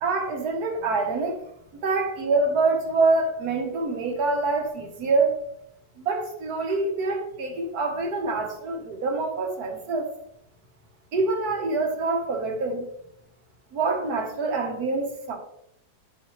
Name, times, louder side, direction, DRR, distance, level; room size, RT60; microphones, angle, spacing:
voice 1, 0.0-1.4 1.7-5.4 6.0-10.1 11.1-12.9 13.7-15.4, right 3 dB, 60° right, 1.7 m, -25 dB
10.0 x 4.1 x 3.1 m
omnidirectional pair, 1.9 m